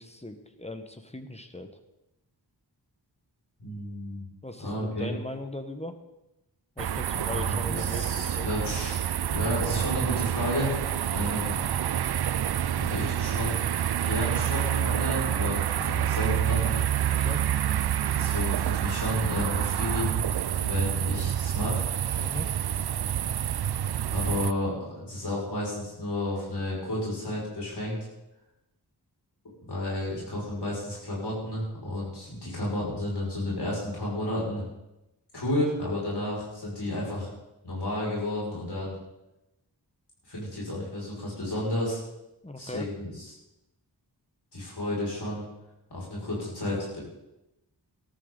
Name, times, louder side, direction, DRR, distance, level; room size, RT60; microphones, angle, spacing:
voice 1, 0.0-1.7 4.4-6.0 6.8-8.5 17.1-17.4 22.1-22.5 42.4-42.9, left 1 dB, 15° left, 7 dB, 1.5 m, -39 dB
voice 2, 3.6-4.2 4.6-5.1 7.1-9.0 9.3-10.7 11.1-11.6 12.8-13.6 14.0-16.8 18.1-20.2 20.5-21.9 24.1-28.0 29.6-34.6 35.3-37.3 37.6-38.9 40.3-42.0 42.6-43.3 44.5-45.4 45.9-47.0, left 1 dB, 65° left, -5 dB, 6.4 m, -32 dB
sound 1, 6.8-24.5, right 10 dB, 65° right, 0.5 m, -28 dB
14.5 x 13.5 x 4.1 m, 0.93 s
cardioid pair, 45°, 43 cm